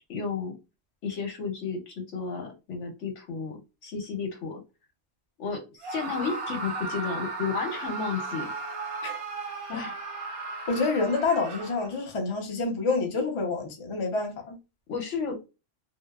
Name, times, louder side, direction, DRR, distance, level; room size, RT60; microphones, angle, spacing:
voice 1, 0.1-0.5 1.0-4.6 5.4-8.5 9.7-10.0 14.9-15.4, left 5 dB, 80° left, 1.1 m, -32 dB
Screaming, 5.8-12.1, right 3 dB, 60° right, 0.3 m, -35 dB
voice 2, 10.7-14.6, left 3 dB, 35° left, 0.5 m, -28 dB
2.7 x 2.0 x 2.2 m
omnidirectional pair, 1.2 m